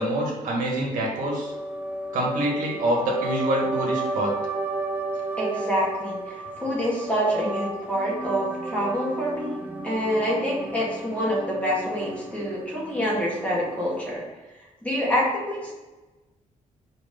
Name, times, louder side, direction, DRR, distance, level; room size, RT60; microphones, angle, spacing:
voice 1, 0.0-1.5 2.1-4.3, right 1 dB, 80° right, -1 dB, 1.9 m, -26 dB
sound 1, 1.1-14.1, right 2 dB, 15° right, 0.7 m, -33 dB
voice 2, 5.4-9.6 9.8-14.2 14.8-15.7, equal, 10° left, -5 dB, 1.9 m, -26 dB
5.0 x 4.6 x 5.5 m, 1.1 s
wide cardioid pair, 170°, 13 cm